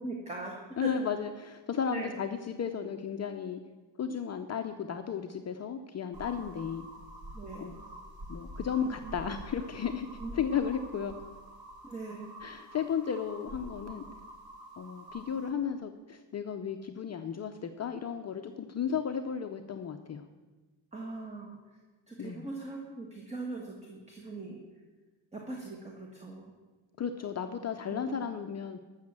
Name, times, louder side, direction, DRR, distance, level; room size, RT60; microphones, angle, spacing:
voice 1, 0.0-1.1 1.9-2.2 7.3-7.7 8.8-9.1 10.2-10.3 11.8-12.3 20.9-21.6 22.1-24.6 25.3-26.5 27.9-28.3, right 2 dB, 15° right, 0 dB, 1.6 m, -40 dB
voice 2, 0.8-3.6 4.0-6.9 7.6-7.8 8.3-10.1 10.3-11.2 12.4-14.1 14.8-20.3 22.2-22.4 27.0-28.8, left 7 dB, 35° left, 5 dB, 0.6 m, -34 dB
sound 1, 6.1-15.5, right 1 dB, 50° right, 2.3 m, -47 dB
13.5 x 6.5 x 7.4 m, 1.3 s
cardioid pair, 135°, 47 cm